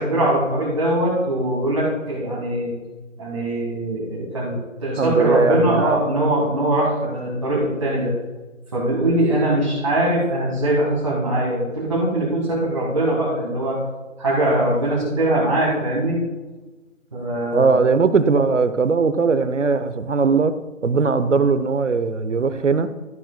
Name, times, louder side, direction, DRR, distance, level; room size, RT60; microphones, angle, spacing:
voice 1, 0.0-2.7 3.2-8.1 8.7-13.8 14.2-16.2 17.1-17.8, right 1 dB, 25° right, -8 dB, 1.7 m, -21 dB
voice 2, 5.0-6.0 17.5-20.5 20.8-22.9, right 4 dB, 65° right, 12 dB, 0.8 m, -19 dB
12.5 x 12.0 x 2.2 m, 1.2 s
figure-of-eight pair, 175°, 40 cm